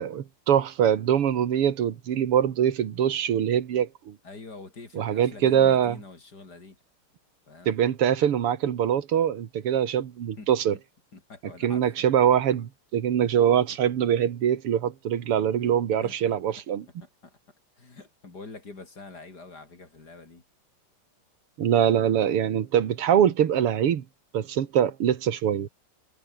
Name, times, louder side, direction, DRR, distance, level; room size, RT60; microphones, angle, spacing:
voice 1, 0.0-4.2 4.9-6.0 7.7-10.8 11.6-16.9 21.6-24.0 24.3-25.7, right 9 dB, 85° right, 2.5 m, -23 dB
voice 2, 4.2-6.8 7.5-7.8 10.4-10.5 11.1-12.1 15.6-16.4 17.0-17.4 17.8-20.4, left 3 dB, 45° left, 4.3 m, -45 dB
omnidirectional pair, 2.4 m